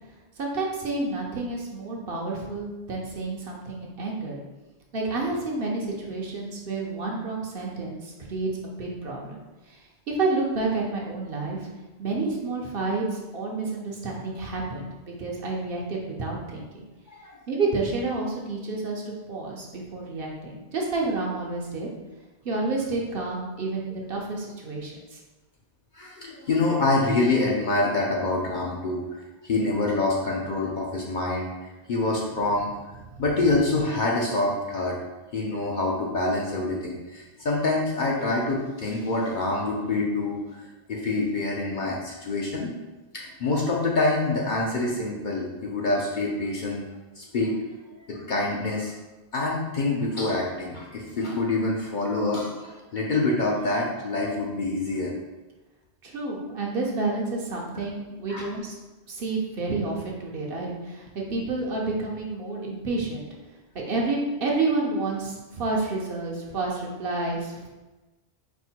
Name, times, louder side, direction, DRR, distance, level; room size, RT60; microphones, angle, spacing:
voice 1, 0.4-4.4 4.9-8.5 8.8-9.8 10.1-11.7 12.0-16.8 17.5-21.9 22.4-25.2 56.0-58.8 59.1-63.3 63.9-67.7, right 3 dB, 60° right, -1 dB, 0.9 m, -29 dB
voice 2, 25.9-29.0 29.4-31.5 31.9-32.7 33.2-35.0 35.3-42.7 43.1-46.8 47.2-47.6 48.1-48.9 49.3-55.1 58.3-58.5, left 2 dB, 55° left, -3 dB, 0.6 m, -26 dB
4.4 x 2.1 x 4.3 m, 1.1 s
omnidirectional pair, 1.2 m